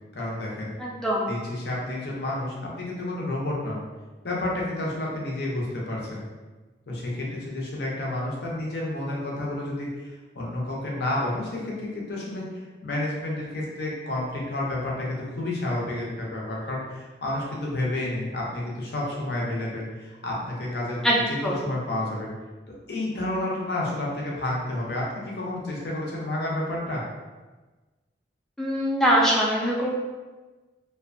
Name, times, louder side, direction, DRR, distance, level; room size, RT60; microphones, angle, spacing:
voice 1, 0.1-0.7 1.3-3.8 4.2-6.2 6.9-21.0 21.4-22.3 22.9-27.0, left 1 dB, 60° left, -4 dB, 0.6 m, -30 dB
voice 2, 0.8-1.3 21.0-21.1 21.4-21.5 28.6-30.0, equal, 5° left, -4 dB, 0.3 m, -22 dB
2.5 x 2.1 x 2.5 m, 1.2 s
head